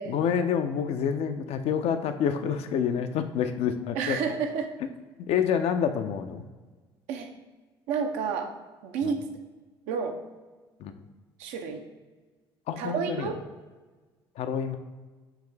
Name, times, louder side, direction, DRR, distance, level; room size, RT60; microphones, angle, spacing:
voice 1, 0.1-4.3 5.3-6.4 9.0-9.1 10.8-10.9 12.7-13.3 14.4-14.8, left 7 dB, 55° left, 8 dB, 0.4 m, -28 dB
voice 2, 3.9-4.7 7.1-7.3 7.9-8.5 8.8-9.2 9.9-10.2 11.4-11.8 12.8-13.4, right 6 dB, 65° right, 5 dB, 0.5 m, -30 dB
4.7 x 3.1 x 3.3 m, 1.3 s
hypercardioid pair, 55°, 12 cm